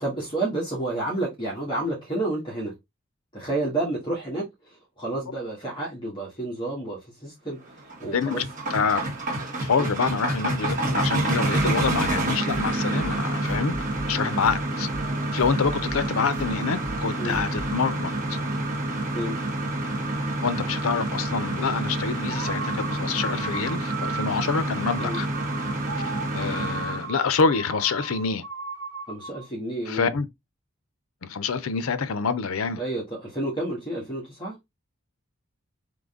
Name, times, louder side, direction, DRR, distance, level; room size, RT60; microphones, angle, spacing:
voice 1, 0.0-2.7 3.3-7.6 8.0-8.4 13.6-13.7 14.1-14.3 17.2-17.3 19.1-19.4 25.0-25.2 29.1-30.1 32.8-34.6, right 2 dB, 20° left, 1.6 m, -30 dB
sound 1, 7.7-27.1, right 1 dB, 40° right, 1.5 m, -28 dB
voice 2, 8.1-8.4 8.7-9.0 9.6-13.7 14.1-14.9 15.3-18.4 20.4-25.3 26.3-28.4 29.9-30.3 31.2-32.8, left 5 dB, 80° left, 0.6 m, -26 dB
sound 2, 11.5-18.5, right 2 dB, 60° right, 1.4 m, -40 dB
sound 3, 22.3-29.5, right 4 dB, 85° right, 1.2 m, -36 dB
3.8 x 3.2 x 3.6 m
head